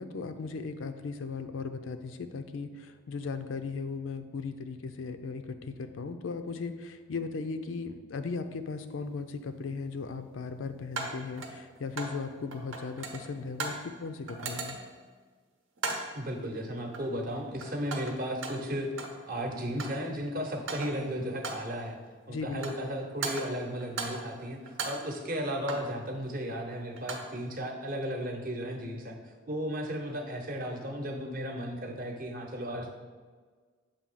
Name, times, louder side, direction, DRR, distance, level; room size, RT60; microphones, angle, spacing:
voice 1, 0.0-14.8 22.3-22.6, left 4 dB, 80° left, 9 dB, 0.4 m, -37 dB
sound 1, 8.7-8.8 11.0-12.2 12.5-13.9 14.3-15.0 15.8-16.2 16.9-17.3 17.6-19.2 19.5-20.1 20.5-21.1 21.4-21.8 22.4-22.9 23.2-24.4 24.7-26.0 26.8-27.4, right 3 dB, 80° right, 0.8 m, -38 dB
voice 2, 16.1-18.9 19.3-22.0 22.3-29.2 29.5-32.9, equal, 45° right, 2 dB, 0.8 m, -35 dB
7.0 x 2.7 x 5.5 m, 1.5 s
head